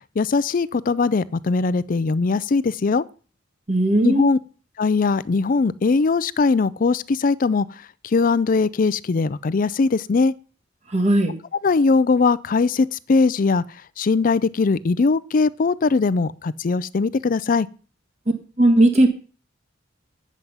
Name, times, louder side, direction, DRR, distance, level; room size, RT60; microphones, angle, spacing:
voice 1, 0.2-3.0 4.0-4.4 4.8-7.7 8.0-10.3 11.6-13.6 14.0-17.7, left 4 dB, 45° left, 0.4 m, -20 dB
voice 2, 3.7-4.2 10.9-11.3 18.6-19.1, right 1 dB, 35° right, 1.4 m, -16 dB
9.2 x 7.5 x 5.5 m
head